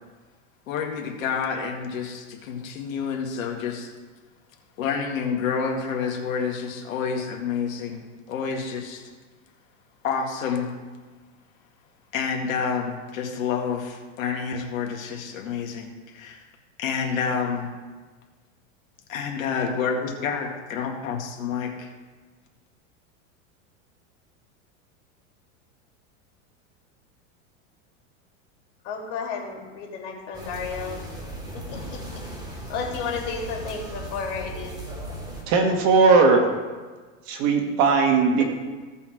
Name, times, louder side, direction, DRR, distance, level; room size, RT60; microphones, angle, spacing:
voice 1, 0.7-3.9 4.8-9.0 10.0-10.7 12.1-16.4 16.8-17.7 19.1-21.9, left 6 dB, 80° left, 1 dB, 2.0 m, -28 dB
voice 2, 28.8-31.0 31.5-32.2 32.7-34.8 38.4-38.5, left 5 dB, 60° left, -1 dB, 3.1 m, -32 dB
sound 1, 30.3-35.4, right 1 dB, 10° right, 2.7 m, -37 dB
voice 3, 35.5-36.4 37.3-38.4, right 4 dB, 55° right, 3 dB, 2.1 m, -18 dB
16.5 x 5.5 x 4.7 m, 1.4 s
supercardioid pair, 120°, 40 cm